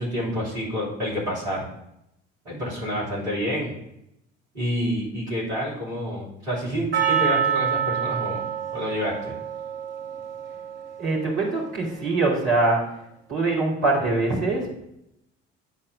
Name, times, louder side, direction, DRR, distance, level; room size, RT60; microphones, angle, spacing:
voice 1, 0.0-1.7 2.4-3.7 4.5-9.3, equal, 80° right, -7 dB, 3.0 m, -28 dB
Percussion, 6.9-11.4, right 8 dB, 35° right, 2.9 m, -27 dB
voice 2, 11.0-12.8 13.3-14.8, right 2 dB, 65° right, -4 dB, 2.8 m, -23 dB
9.5 x 4.3 x 5.8 m, 0.81 s
figure-of-eight pair, 55°, 33 cm